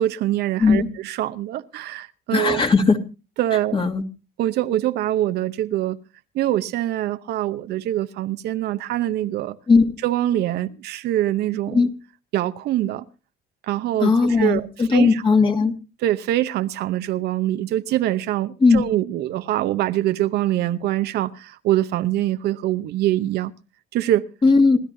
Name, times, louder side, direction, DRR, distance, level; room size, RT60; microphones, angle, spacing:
voice 1, 0.0-2.6 3.4-3.8 4.4-6.0 6.3-9.6 10.0-11.8 12.3-13.0 13.7-15.2 16.0-23.5 23.9-24.3, right 13 dB, 75° right, 0.9 m, -24 dB
voice 2, 2.3-3.0 3.7-4.0 9.7-9.9 11.7-11.9 14.0-15.7 18.6-18.8 24.4-24.8, left 4 dB, 30° left, 2.3 m, -17 dB
27.0 x 12.0 x 2.7 m
cardioid pair, 110°, 17 cm